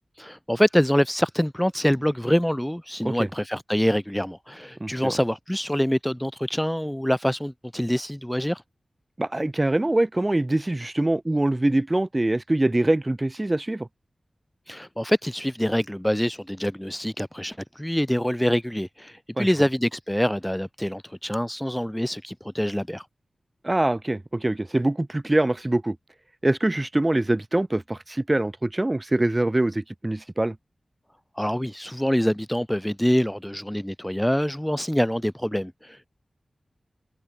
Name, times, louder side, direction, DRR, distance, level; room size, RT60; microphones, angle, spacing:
voice 1, 0.2-8.6 14.7-23.0 31.4-36.0, equal, 5° left, 1.1 m, -25 dB
voice 2, 4.8-5.2 9.2-13.9 19.4-19.5 23.6-26.0 26.4-30.6, right 1 dB, 20° right, 0.8 m, -24 dB
wide cardioid pair, 100°, 0 cm